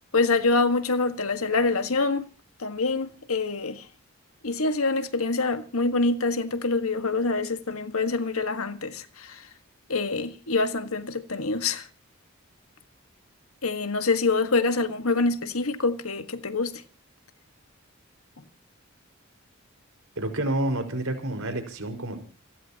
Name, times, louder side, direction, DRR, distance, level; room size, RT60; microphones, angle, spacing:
voice 1, 0.1-2.3 2.6-3.9 4.4-9.5 9.9-11.9 13.6-16.8, left 3 dB, 85° left, 1.6 m, -25 dB
voice 2, 20.2-22.2, right 1 dB, 70° right, 5.1 m, -29 dB
29.5 x 14.5 x 2.9 m
head